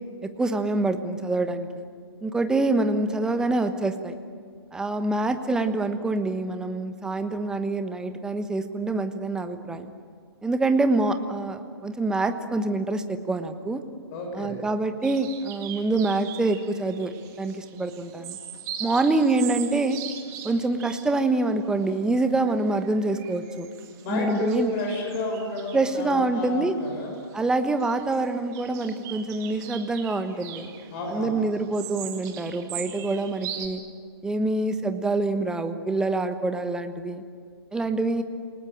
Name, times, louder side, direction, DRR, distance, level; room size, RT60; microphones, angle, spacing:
voice 1, 0.2-1.9 2.2-4.1 4.7-9.9 10.4-13.8 14.3-18.4 18.8-20.0 20.4-23.7 24.1-24.7 25.7-26.7 27.3-30.7 31.1-33.8 34.2-37.2 37.7-38.2, right 2 dB, 5° right, 8 dB, 1.1 m, -26 dB
voice 2, 14.1-14.6 23.9-27.1 30.9-31.4, left 2 dB, 30° left, 1 dB, 6.5 m, -31 dB
sound 1, 15.0-33.7, right 10 dB, 25° right, 2.2 m, -41 dB
28.5 x 19.0 x 9.0 m, 2.1 s
figure-of-eight pair, 125°, 13 cm